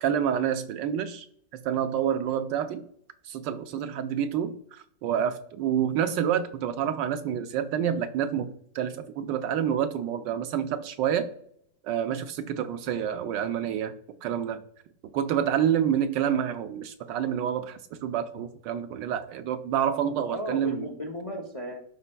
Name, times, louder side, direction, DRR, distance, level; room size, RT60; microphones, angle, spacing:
voice 1, 0.0-1.3 1.6-2.8 3.3-11.3 11.8-13.9 14.2-14.6 15.1-20.8, right 9 dB, 85° right, 8 dB, 1.3 m, -28 dB
voice 2, 20.3-21.8, equal, 60° left, 1 dB, 0.3 m, -36 dB
12.5 x 4.3 x 2.2 m, 0.68 s
omnidirectional pair, 1.9 m